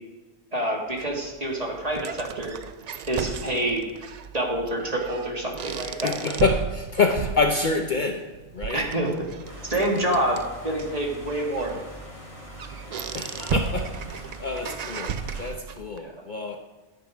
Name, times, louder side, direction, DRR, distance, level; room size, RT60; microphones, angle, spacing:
voice 1, 0.5-2.6 3.1-3.8 4.3-6.1 8.7-9.1 9.6-11.8 16.0-16.1, right 1 dB, 30° right, 0 dB, 1.9 m, -27 dB
sound 1, 1.0-16.0, right 7 dB, 55° right, 0.4 m, -35 dB
voice 2, 5.7-8.9 13.1-16.6, left 4 dB, 45° left, 4 dB, 0.8 m, -27 dB
sound 2, 9.4-15.5, left 1 dB, 25° left, 3.1 m, -43 dB
11.0 x 8.9 x 5.0 m, 1.2 s
omnidirectional pair, 1.2 m